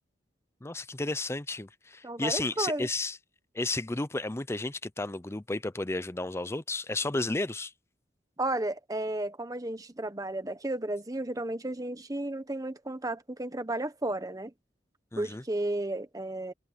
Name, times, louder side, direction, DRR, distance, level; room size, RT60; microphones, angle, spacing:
voice 1, 0.6-3.2 3.5-7.7 15.1-15.4, left 2 dB, 15° left, 0.6 m, -32 dB
voice 2, 2.0-2.9 8.4-14.5 15.1-16.5, right 1 dB, 20° right, 1.3 m, -33 dB
head